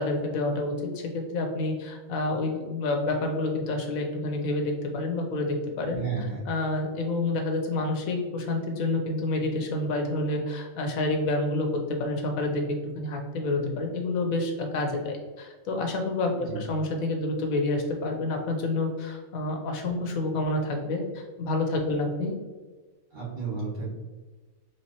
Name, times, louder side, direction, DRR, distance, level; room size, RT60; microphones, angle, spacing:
voice 1, 0.0-6.0 6.5-12.6 12.9-22.3, left 2 dB, 90° left, 3 dB, 1.2 m, -28 dB
voice 2, 6.0-6.5 16.4-16.7 23.1-23.9, right 4 dB, 90° right, -6 dB, 1.7 m, -32 dB
4.3 x 3.4 x 2.9 m, 1.3 s
omnidirectional pair, 1.4 m